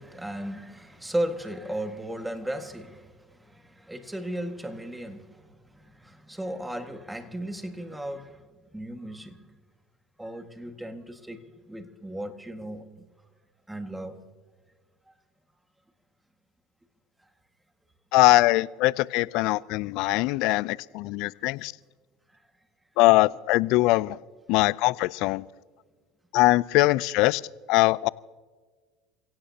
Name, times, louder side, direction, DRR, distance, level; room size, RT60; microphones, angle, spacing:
voice 1, 0.0-9.4 10.2-13.0 13.7-14.2 20.6-20.7, right 1 dB, 5° right, 1.8 m, -36 dB
voice 2, 18.1-21.7 23.0-24.2 24.5-25.4 26.3-27.4 27.7-28.1, left 20 dB, 65° left, 0.4 m, -22 dB
29.0 x 17.0 x 2.8 m
hypercardioid pair, 90°, 0 cm